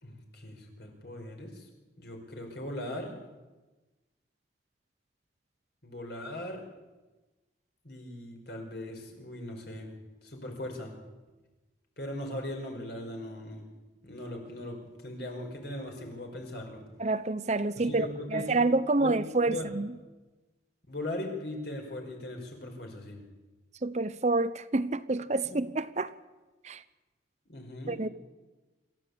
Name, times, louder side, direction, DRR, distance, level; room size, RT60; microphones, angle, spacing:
voice 1, 0.0-1.7 2.0-3.2 5.8-6.6 7.8-9.9 10.2-10.9 12.0-13.6 14.0-16.8 17.8-18.7 19.0-19.2 19.5-19.7 20.9-23.2 25.4-25.6 27.5-28.0, left 1 dB, 60° left, 5.4 m, -39 dB
voice 2, 17.0-18.1 18.3-19.9 23.8-26.1 26.6-26.8 27.9-28.1, right 3 dB, 35° right, 0.7 m, -28 dB
27.0 x 14.0 x 8.6 m
head